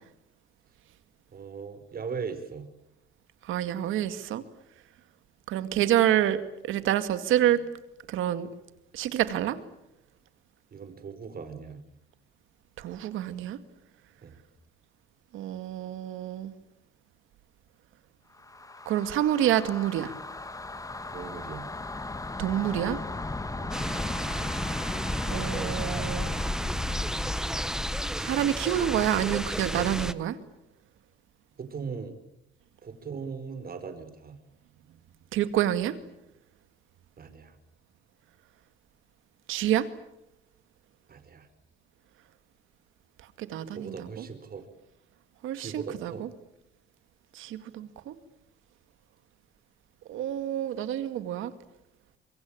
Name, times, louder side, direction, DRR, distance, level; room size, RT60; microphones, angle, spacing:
voice 1, 1.3-2.7 10.7-11.8 14.2-14.4 21.1-21.7 23.6-23.9 31.6-32.2 32.8-34.4 37.2-37.6 41.1-41.5 43.7-44.7 45.5-46.2, right 5 dB, 50° right, 8 dB, 4.8 m, -39 dB
voice 2, 3.5-4.4 5.5-6.4 6.7-7.6 8.1-8.5 8.9-9.6 12.8-13.6 15.3-16.5 18.9-20.1 22.4-23.0 25.3-26.3 28.2-30.4 35.3-35.9 39.5-39.9 43.4-44.1 45.4-46.1 47.4-48.1 50.1-51.5, right 12 dB, 90° right, 11 dB, 2.1 m, -27 dB
sound 1, 18.4-28.2, left 2 dB, 15° left, 1.6 m, -35 dB
sound 2, 23.7-30.1, equal, 5° right, 1.2 m, -33 dB
25.5 x 23.5 x 8.9 m, 0.87 s
cardioid pair, 90°, 20 cm